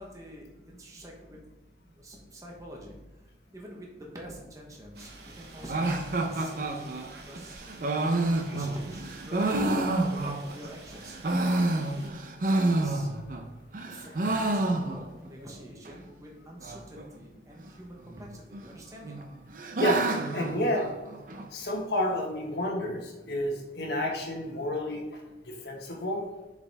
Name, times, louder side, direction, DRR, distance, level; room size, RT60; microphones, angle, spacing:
voice 1, 0.0-1.4 2.0-2.9 3.5-5.1 5.4-6.9 7.3-11.2 11.6-11.7 11.9-12.2 12.5-13.1 14.0-19.3, equal, 20° right, -1 dB, 1.0 m, -46 dB
sound 1, 4.9-12.1, right 3 dB, 65° right, 1.0 m, -48 dB
sound 2, 5.7-10.7 11.1-13.4 13.7-15.3 15.5-15.6 15.9-16.0 16.6-17.0 18.1-18.7 19.0-21.5, right 2 dB, 50° right, 0.6 m, -29 dB
voice 2, 19.8-20.8 21.5-25.2 25.5-26.2, left 1 dB, 70° left, 0 dB, 1.5 m, -30 dB
7.0 x 5.0 x 3.4 m, 1.0 s
head